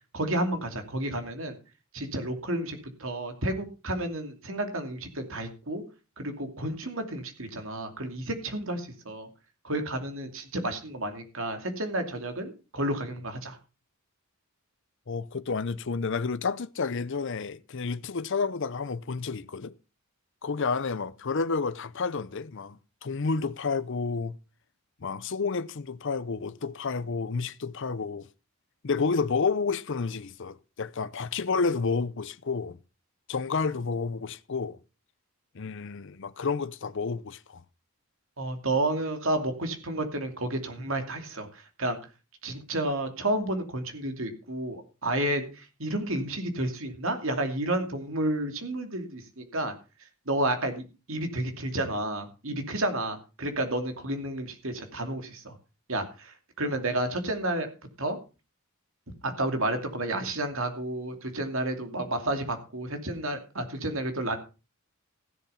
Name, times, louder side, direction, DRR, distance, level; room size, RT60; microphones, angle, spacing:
voice 1, 0.1-1.6 1.9-5.8 6.2-9.3 9.6-13.6 38.4-42.0 42.4-49.7 50.3-55.5 55.9-57.7 58.0-58.2 59.2-64.4, right 1 dB, 60° right, 2.7 m, -31 dB
voice 2, 15.1-19.7 20.4-24.4 25.0-28.3 28.8-32.8 33.3-34.8 35.5-37.6, left 4 dB, 55° left, 0.6 m, -30 dB
15.5 x 7.0 x 5.7 m
head